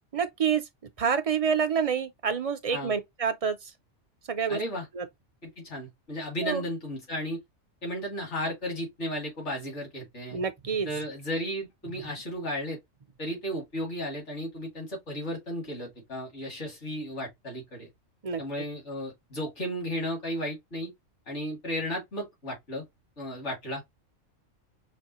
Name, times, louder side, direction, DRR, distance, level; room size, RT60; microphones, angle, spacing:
voice 1, 0.1-0.7 1.0-3.7 4.3-4.6 4.9-5.1 6.4-6.7 10.3-10.9 18.2-18.4, right 6 dB, 50° right, 0.4 m, -27 dB
voice 2, 4.5-4.9 5.6-7.4 7.8-10.4 10.9-12.8 13.2-17.9 18.4-20.9 21.3-22.8 23.2-23.8, equal, 60° left, 2.5 m, -34 dB
5.1 x 2.3 x 2.9 m
omnidirectional pair, 1.3 m